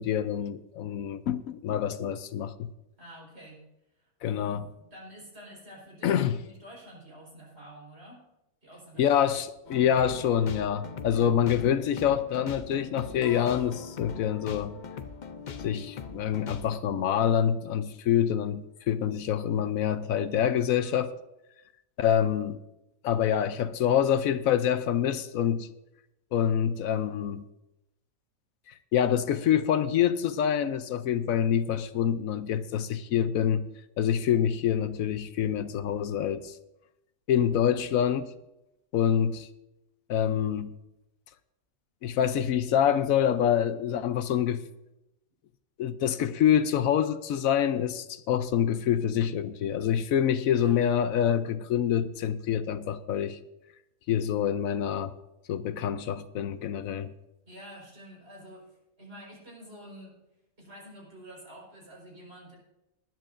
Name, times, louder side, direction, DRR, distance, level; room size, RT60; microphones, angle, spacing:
voice 1, 0.0-2.7 4.2-4.7 6.0-6.4 9.0-14.7 15.6-21.1 22.0-22.6 23.0-25.7 26.3-27.4 28.9-33.7 34.0-36.6 37.3-38.3 38.9-39.5 40.1-40.7 42.0-44.6 45.8-53.4 54.1-55.1 55.5-57.1, left 9 dB, 75° left, 1.0 m, -26 dB
voice 2, 3.0-3.6 3.9-8.2 8.6-9.2 50.6-50.8 57.5-58.7 59.0-60.1 60.6-62.6, equal, 50° right, 4.9 m, -48 dB
sound 1, 9.7-16.8, left 6 dB, 50° left, 0.5 m, -41 dB
20.0 x 10.5 x 2.6 m
omnidirectional pair, 1.5 m